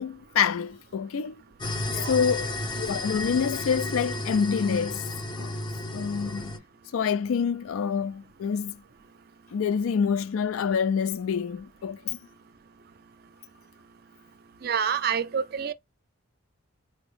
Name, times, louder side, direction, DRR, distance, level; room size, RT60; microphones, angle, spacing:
voice 1, 0.0-1.7 2.1-5.1 5.4-5.5 5.9-6.5 6.9-8.8 9.5-12.2, left 6 dB, 85° left, 0.4 m, -27 dB
sound 1, 1.6-6.6, left 1 dB, 20° left, 0.5 m, -33 dB
voice 2, 14.6-15.7, right 7 dB, 45° right, 0.4 m, -28 dB
3.9 x 2.0 x 3.1 m
head